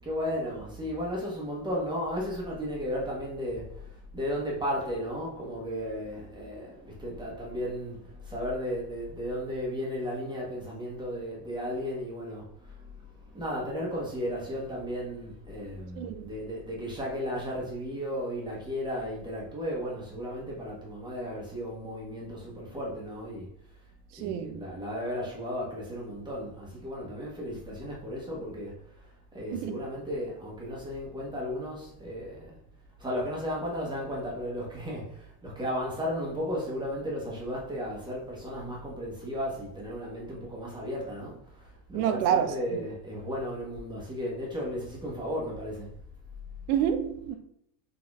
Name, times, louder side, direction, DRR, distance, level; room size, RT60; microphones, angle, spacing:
voice 1, 0.0-23.5 24.2-32.6 33.0-45.9, equal, 10° right, 1.2 m, -35 dB
voice 2, 16.0-16.3 24.1-24.6 29.5-29.8 41.9-42.8 46.7-47.4, right 9 dB, 65° right, 0.7 m, -28 dB
4.1 x 2.9 x 2.4 m
hypercardioid pair, 100°, 49 cm